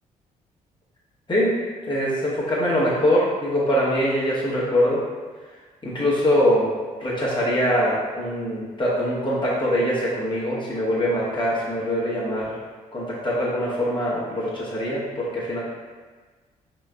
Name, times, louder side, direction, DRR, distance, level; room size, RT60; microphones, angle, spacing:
voice 1, 1.9-5.0 5.8-6.7 7.0-12.6 12.9-15.6, equal, 25° left, -8 dB, 1.1 m, -23 dB
4.5 x 3.0 x 2.2 m, 1.4 s
hypercardioid pair, 45°, 19 cm